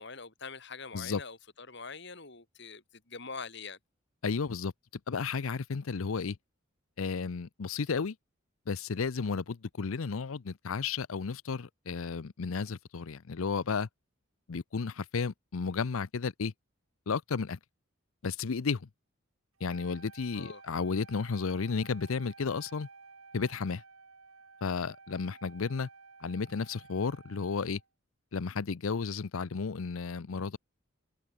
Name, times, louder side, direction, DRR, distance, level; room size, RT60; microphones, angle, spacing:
voice 1, 0.0-3.8 20.3-20.6, left 4 dB, 55° left, 3.2 m, -44 dB
voice 2, 4.2-4.7 5.1-6.4 7.0-8.1 8.7-13.9 14.5-16.5 17.1-17.6 18.2-18.9 19.6-22.9 23.3-23.8 24.6-25.9 26.2-27.8 28.3-30.6, left 5 dB, 80° left, 0.6 m, -33 dB
Wind instrument woodwind instrument, 19.6-27.9, right 4 dB, 75° right, 2.7 m, -54 dB
head